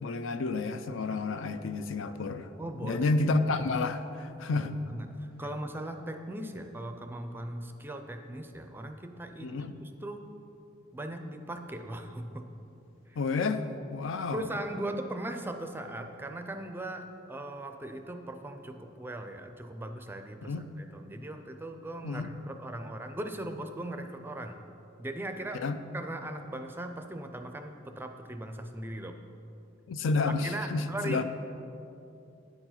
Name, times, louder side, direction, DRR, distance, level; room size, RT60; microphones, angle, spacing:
voice 1, 0.0-2.5 2.8-4.8 9.4-9.7 13.2-13.6 13.9-14.4 20.4-20.7 22.0-22.3 25.5-25.8 29.9-31.2, left 3 dB, 70° left, 10 dB, 0.4 m, -30 dB
voice 2, 2.6-3.1 4.5-10.2 10.9-12.5 13.1-13.2 14.3-24.6 25.0-25.6 25.9-29.2 30.4-31.2, right 1 dB, 10° right, 6 dB, 0.4 m, -39 dB
9.5 x 4.6 x 5.7 m, 2.8 s
head